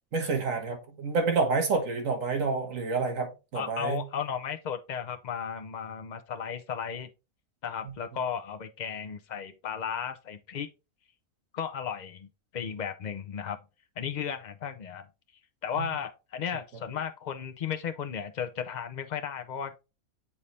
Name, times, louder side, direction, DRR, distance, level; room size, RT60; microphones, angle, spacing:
voice 1, 0.1-4.0, right 4 dB, 65° right, 1.7 m, -28 dB
voice 2, 3.5-7.1 7.6-10.7 11.5-13.6 14.0-15.1 15.6-19.8, left 7 dB, 80° left, 0.4 m, -35 dB
7.2 x 4.1 x 3.2 m
omnidirectional pair, 1.5 m